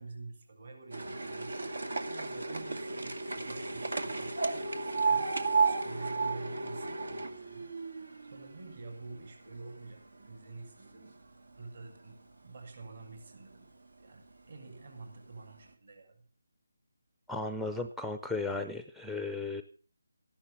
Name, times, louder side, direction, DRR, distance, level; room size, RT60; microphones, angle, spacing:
voice 1, 0.0-11.2 11.5-13.7 14.0-16.2, right 3 dB, 55° right, 3 dB, 6.8 m, -48 dB
sound 1, 0.9-9.2 9.5-10.4 11.1-11.2 11.5-11.6 11.8-11.9 12.8-13.0 13.5-13.6 14.3-14.4 14.9-15.0, right 4 dB, 75° right, 2.2 m, -33 dB
voice 2, 17.3-19.6, left 3 dB, ahead, 8 dB, 0.6 m, -35 dB
14.5 x 11.5 x 6.6 m, 0.41 s
figure-of-eight pair, 160°, 0 cm